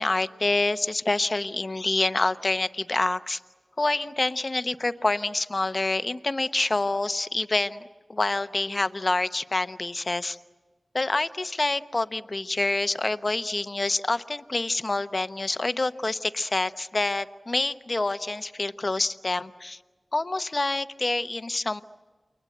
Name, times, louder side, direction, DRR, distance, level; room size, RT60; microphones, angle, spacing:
voice 1, 0.0-3.4 3.8-7.8 8.1-10.4 10.9-19.8 20.1-21.8, left 2 dB, 45° left, 11 dB, 0.9 m, -27 dB
29.5 x 22.5 x 7.9 m, 1.3 s
cardioid pair, 45°, 0 cm